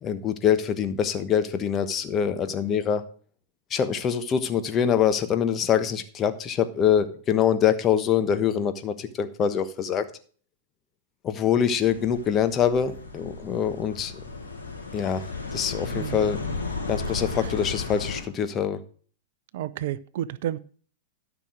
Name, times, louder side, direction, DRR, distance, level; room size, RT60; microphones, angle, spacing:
voice 1, 0.0-3.0 3.7-10.0 11.2-14.1 14.9-15.3 15.5-16.4 16.9-18.8, left 8 dB, 30° left, 10 dB, 1.2 m, -24 dB
sound 1, 11.8-18.2, left 3 dB, 85° left, 4.0 m, -34 dB
voice 2, 15.9-16.3 19.5-20.6, right 12 dB, 60° right, 17 dB, 0.5 m, -31 dB
13.0 x 6.0 x 6.2 m, 0.44 s
hypercardioid pair, 105°, 0 cm